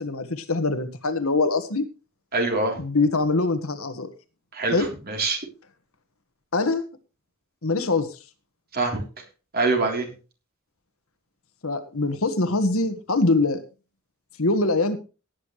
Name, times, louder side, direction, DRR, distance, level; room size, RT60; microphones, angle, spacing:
voice 1, 0.0-1.8 2.8-4.1 4.7-4.9 6.5-6.8 7.6-8.2 11.6-13.6 14.4-15.0, left 3 dB, 80° left, 9 dB, 1.6 m, -23 dB
voice 2, 2.3-2.8 4.5-5.4 8.7-9.0 9.5-10.1, right 3 dB, 45° right, 2 dB, 3.5 m, -24 dB
18.0 x 9.4 x 3.2 m, 0.33 s
head